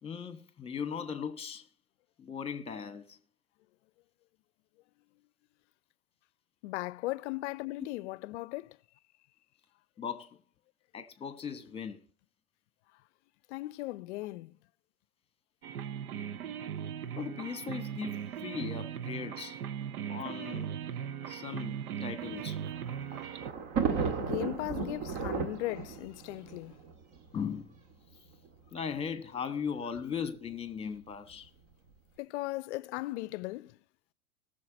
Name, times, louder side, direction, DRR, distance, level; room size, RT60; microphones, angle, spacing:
voice 1, 0.0-1.7 2.2-3.2 7.8-7.9 10.0-10.4 10.9-12.0 17.2-19.6 20.1-20.7 21.3-22.6 24.3-24.4 27.3-27.7 28.7-31.5, left 7 dB, 15° left, 1.3 m, -38 dB
voice 2, 6.6-8.8 13.5-14.6 23.2-23.3 23.9-26.8 32.2-33.8, left 19 dB, 50° left, 0.6 m, -37 dB
sound 1, 15.6-23.5, right 9 dB, 75° right, 0.9 m, -38 dB
Thunder, 22.3-27.6 28.5-28.6 28.8-28.9 30.0-30.3, right 6 dB, 45° right, 2.0 m, -35 dB
18.5 x 6.7 x 3.9 m
hypercardioid pair, 105°, 44 cm